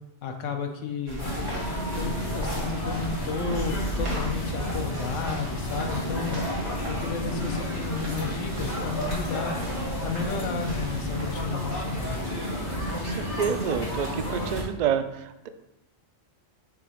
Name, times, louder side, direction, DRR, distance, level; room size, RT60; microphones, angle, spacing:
voice 1, 0.2-1.3 1.9-6.4 6.9-9.6 10.0-12.2, left 5 dB, 85° left, 4 dB, 1.1 m, -33 dB
sound 1, 1.1-12.2, equal, 85° right, 1.8 m, -39 dB
sound 2, 1.2-14.6, equal, 65° left, 2.5 m, -31 dB
voice 2, 12.9-15.5, right 8 dB, 70° right, 9 dB, 0.4 m, -29 dB
7.2 x 3.0 x 4.9 m, 0.91 s
omnidirectional pair, 1.3 m